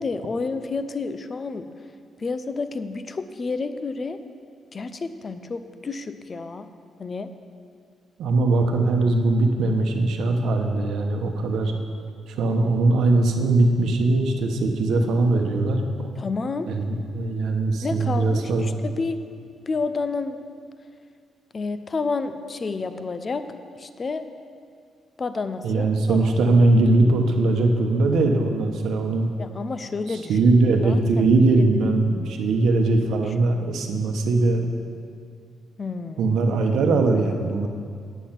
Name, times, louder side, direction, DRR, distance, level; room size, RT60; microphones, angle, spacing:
voice 1, 0.0-1.6 2.2-4.2 4.7-6.7 7.0-7.3 16.2-16.7 17.8-19.2 19.7-20.4 21.5-23.5 23.8-24.2 25.2-26.3 29.4-30.5 30.8-31.7 33.3-33.4 35.8-36.3, left 4 dB, 25° left, 10 dB, 0.4 m, -30 dB
voice 2, 8.2-11.7 12.4-15.8 16.7-18.7 25.6-29.3 30.1-34.6 36.2-37.7, right 2 dB, 75° right, 4 dB, 1.0 m, -20 dB
9.0 x 8.9 x 5.8 m, 2.2 s
cardioid pair, 175°, 0 cm